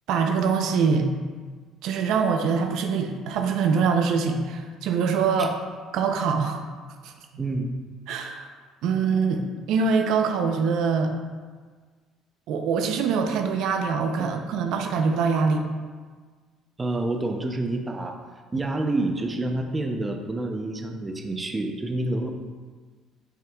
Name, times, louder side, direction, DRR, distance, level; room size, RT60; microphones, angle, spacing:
voice 1, 0.1-1.1 1.8-5.5 5.9-6.6 7.0-7.1 8.1-8.5 8.8-11.1 12.5-15.6, right 5 dB, 75° right, 4 dB, 0.6 m, -24 dB
voice 2, 7.4-7.7 14.2-14.3 16.8-18.2 18.5-22.3, right 2 dB, 20° right, 4 dB, 0.6 m, -28 dB
7.3 x 5.6 x 2.3 m, 1.5 s
cardioid pair, 100°, 0 cm